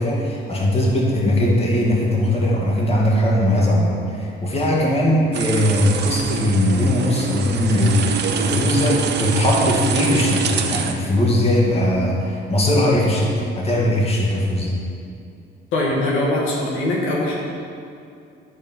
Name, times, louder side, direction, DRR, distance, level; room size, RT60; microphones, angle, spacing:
voice 1, 0.0-14.8, left 1 dB, 30° left, -3 dB, 2.1 m, -19 dB
sound 1, 5.3-10.9, right 5 dB, 60° right, 0.8 m, -25 dB
voice 2, 15.7-17.3, left 1 dB, 85° left, -3 dB, 1.7 m, -21 dB
11.5 x 4.4 x 5.6 m, 2.5 s
cardioid pair, 90°, 20 cm